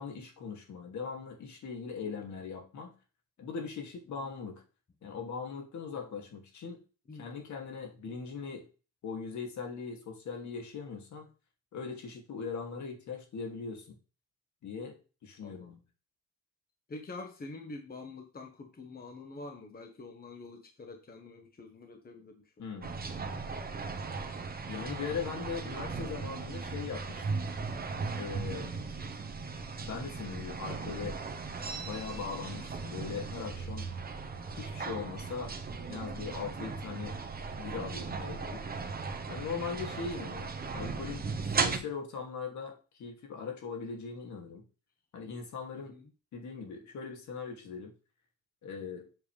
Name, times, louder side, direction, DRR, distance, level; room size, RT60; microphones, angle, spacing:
voice 1, 0.0-2.9 3.4-4.6 5.0-6.8 7.1-8.6 9.0-11.3 11.7-13.9 14.6-14.9 15.2-15.8 22.6-22.9 24.7-27.4 28.2-28.7 29.8-31.2 31.8-33.9 34.6-35.5 35.9-37.2 37.6-38.6 39.3-41.2 41.6-44.6 45.1-46.0 46.3-47.9 48.6-49.1, left 5 dB, 70° left, 3 dB, 2.6 m, -40 dB
voice 2, 15.4-15.7 16.9-22.7 45.7-46.0, left 3 dB, 30° left, 5 dB, 1.3 m, -47 dB
sound 1, 22.8-41.8, right 4 dB, 30° right, 1.3 m, -37 dB
7.5 x 7.0 x 3.4 m, 0.34 s
cardioid pair, 90°, 30 cm